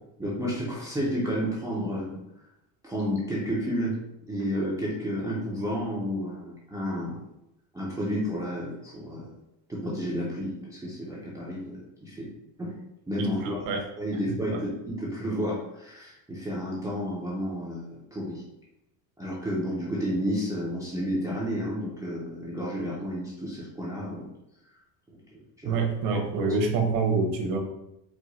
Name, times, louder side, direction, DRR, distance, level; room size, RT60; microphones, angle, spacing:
voice 1, 0.2-2.2 2.8-4.0 4.3-7.2 7.7-9.3 9.7-12.3 12.6-12.7 13.1-13.7 14.0-18.4 19.2-24.2 25.3-25.8 26.1-26.2, equal, 5° right, -7 dB, 0.4 m, -31 dB
voice 2, 13.2-13.9 14.3-14.6 25.6-27.6, right 4 dB, 65° right, 4 dB, 1.0 m, -27 dB
4.8 x 2.1 x 3.9 m, 0.85 s
cardioid pair, 155°, 49 cm